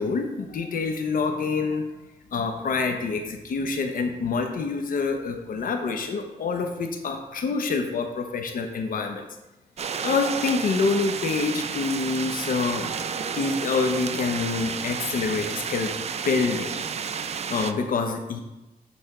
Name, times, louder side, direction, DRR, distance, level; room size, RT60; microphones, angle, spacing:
voice 1, 0.0-1.8 2.3-9.3 10.0-12.9 13.4-15.9 16.2-16.8 17.1-18.4, left 4 dB, 70° left, 4 dB, 0.8 m, -26 dB
sound 1, 9.8-17.7, right 6 dB, 45° right, 0.4 m, -31 dB
7.9 x 4.2 x 4.8 m, 1.0 s
wide cardioid pair, 130°, 15 cm